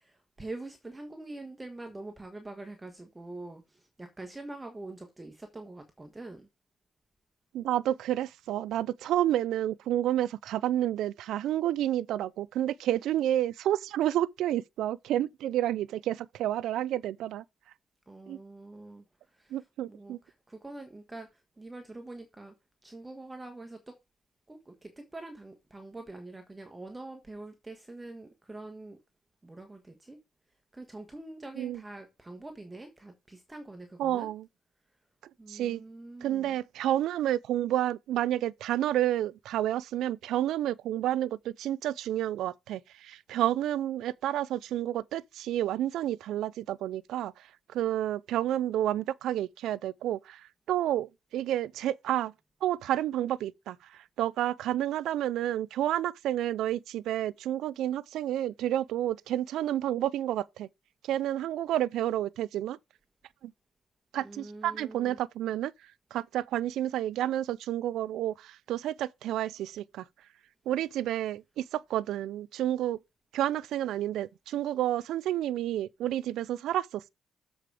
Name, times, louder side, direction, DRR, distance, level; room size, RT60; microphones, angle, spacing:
voice 1, 0.0-6.5 18.1-19.0 19.4-19.6 19.9-20.2 20.5-21.3 21.6-22.5 22.8-23.9 24.5-29.0 29.4-30.2 30.7-34.3 35.4-36.5 64.2-65.2, right 2 dB, 15° right, 1.4 m, -44 dB
voice 2, 7.5-17.4 18.3-18.4 19.5-20.2 31.6-31.8 34.0-34.5 35.5-35.8 36.2-52.3 52.6-60.7 61.0-62.8 63.4-63.5 64.1-65.7 66.1-70.0 70.7-73.0 73.3-77.1, right 12 dB, 80° right, 0.4 m, -30 dB
7.6 x 5.0 x 4.8 m
cardioid pair, 90°, 0 cm